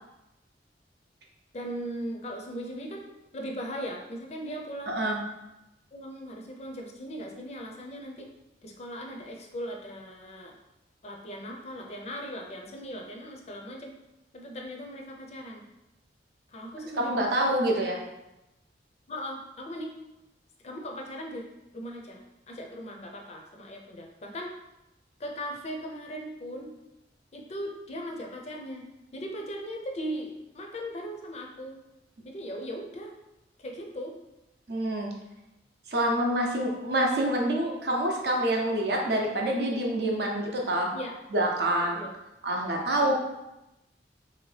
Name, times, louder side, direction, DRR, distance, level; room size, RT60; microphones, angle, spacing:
voice 1, 1.5-3.1 3.3-5.0 5.9-8.3 8.6-10.5 11.0-13.9 14.3-15.6 16.5-17.2 19.1-19.9 20.6-21.4 21.7-24.5 25.2-26.7 27.3-28.9 29.1-31.8 32.2-33.1 33.6-34.1 40.9-41.1 41.9-42.1 43.0-43.1, equal, 35° left, 1 dB, 0.4 m, -38 dB
voice 2, 4.9-5.2 17.0-18.0 34.7-35.1 35.9-40.9 41.3-42.0 42.4-43.1, right 1 dB, 60° right, 0 dB, 0.6 m, -26 dB
2.9 x 2.7 x 3.2 m, 0.93 s
head